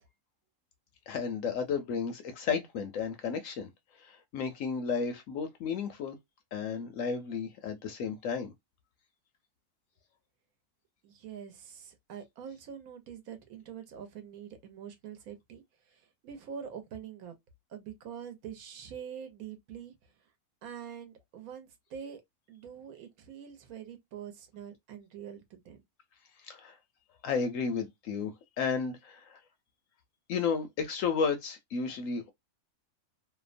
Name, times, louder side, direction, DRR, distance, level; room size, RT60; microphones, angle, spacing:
voice 1, 1.1-3.7 4.0-6.2 6.5-8.5 26.4-26.8 27.2-28.3 28.6-29.4 30.3-32.3, left 5 dB, 70° left, 0.8 m, -33 dB
voice 2, 11.0-17.3 17.7-20.1 20.6-22.2 22.5-25.8, right 8 dB, 70° right, 1.1 m, -45 dB
2.8 x 2.1 x 2.4 m
omnidirectional pair, 1.6 m